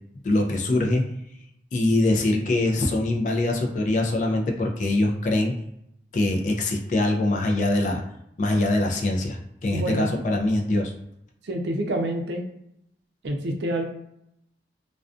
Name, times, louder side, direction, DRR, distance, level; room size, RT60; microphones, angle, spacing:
voice 1, 0.2-1.1 1.7-5.6 6.1-8.0 8.4-10.9, left 2 dB, 45° left, 2 dB, 0.3 m, -23 dB
voice 2, 9.7-10.1 11.4-12.4 13.2-13.8, right 1 dB, 75° right, 3 dB, 0.4 m, -27 dB
2.4 x 2.2 x 2.4 m, 0.78 s
head